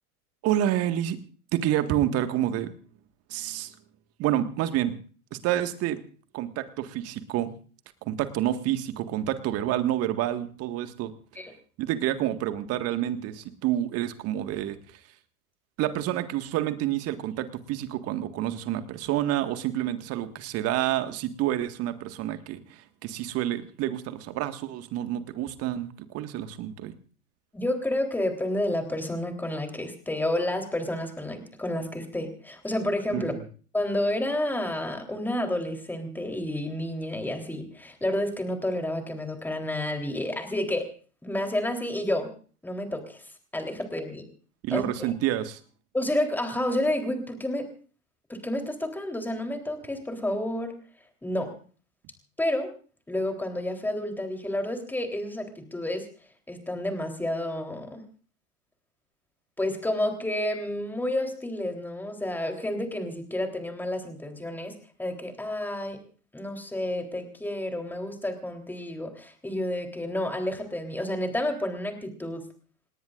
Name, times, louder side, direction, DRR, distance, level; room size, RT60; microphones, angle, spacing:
voice 1, 0.4-1.2 1.5-2.7 3.3-3.7 4.2-5.0 5.3-6.0 6.3-7.5 8.0-11.1 11.8-14.8 15.8-27.0 33.1-33.3 44.6-45.6, right 12 dB, 30° right, 9 dB, 1.8 m, -28 dB
voice 2, 27.5-33.3 33.7-40.9 41.2-42.3 42.6-44.3 44.7-44.9 45.9-47.7 48.3-50.7 51.2-51.5 52.4-52.7 53.1-56.1 56.5-58.0 59.6-64.7 65.0-66.0 66.3-72.5, left 1 dB, 5° left, 5 dB, 3.6 m, -30 dB
28.5 x 18.5 x 2.5 m, 0.41 s
figure-of-eight pair, 100°, 45 cm